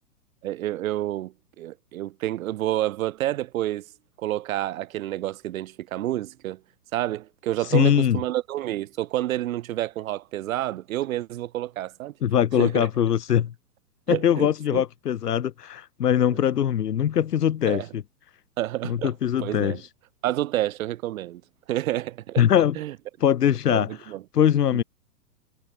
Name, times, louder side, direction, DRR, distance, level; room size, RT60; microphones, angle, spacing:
voice 1, 0.4-3.8 4.2-6.6 6.9-12.1 12.6-12.9 14.1-14.8 16.3-16.4 17.7-17.9 18.6-19.1 19.4-19.8 20.2-21.4 21.7-22.4 22.8-22.9 23.7-24.2 24.7-24.8, right 14 dB, 55° right, 2.5 m, -29 dB
voice 2, 7.7-8.2 12.2-13.5 14.1-18.0 18.8-19.8 22.4-22.8 23.2-24.0 24.3-24.8, left 9 dB, 75° left, 3.6 m, -22 dB
hypercardioid pair, 135°, 48 cm